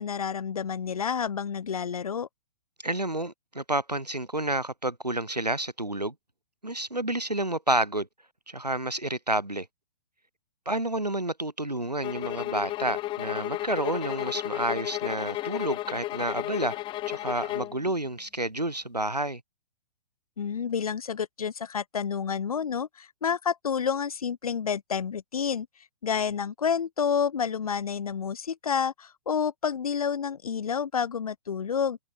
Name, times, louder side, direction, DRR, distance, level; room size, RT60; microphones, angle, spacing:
voice 1, 0.0-2.3 20.4-25.7 26.0-32.0, left 7 dB, 65° left, 2.6 m, -29 dB
voice 2, 2.8-6.1 6.6-8.1 8.5-9.7 10.7-16.7 17.1-19.4, right 1 dB, 90° right, 1.9 m, -30 dB
sound 1, 12.0-17.8, left 16 dB, 25° left, 4.1 m, -33 dB
figure-of-eight pair, 115°, 20 cm